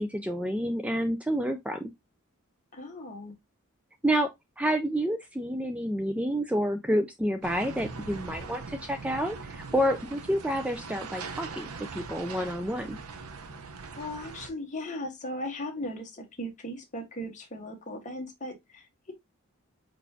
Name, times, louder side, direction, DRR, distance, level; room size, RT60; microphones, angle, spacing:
voice 1, 0.0-1.9 4.0-4.3 4.6-13.0, equal, 5° right, 0.3 m, -29 dB
voice 2, 2.7-3.3 14.0-19.1, left 1 dB, 35° left, 1.2 m, -37 dB
sound 1, 7.4-14.5, right 4 dB, 80° right, 0.7 m, -41 dB
4.7 x 4.1 x 2.6 m
head